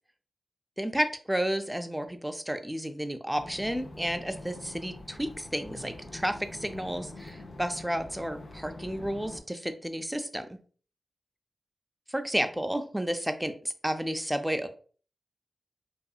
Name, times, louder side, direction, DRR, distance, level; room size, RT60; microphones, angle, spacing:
voice 1, 0.8-10.6 12.1-14.7, equal, 5° right, 8 dB, 0.4 m, -32 dB
sound 1, 3.4-9.4, left 2 dB, 65° left, 0.5 m, -45 dB
2.7 x 2.3 x 2.3 m, 0.41 s
cardioid pair, 60°, 0 cm